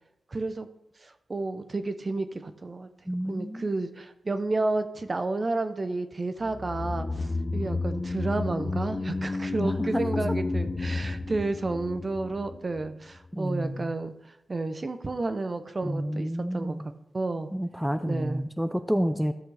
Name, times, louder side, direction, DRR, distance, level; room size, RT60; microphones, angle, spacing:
voice 1, 0.3-0.7 1.0-2.9 3.3-14.1 14.5-16.8 17.1-17.5 18.1-18.4, right 2 dB, 40° right, 9 dB, 0.7 m, -31 dB
voice 2, 3.1-3.7 9.6-10.0 13.3-13.9 15.8-16.9 17.5-19.3, equal, 5° right, 9 dB, 0.5 m, -29 dB
sound 1, 6.4-12.9 13.1-13.2, left 3 dB, 35° left, 0.8 m, -31 dB
13.5 x 5.9 x 3.4 m, 0.83 s
cardioid pair, 60°, 0 cm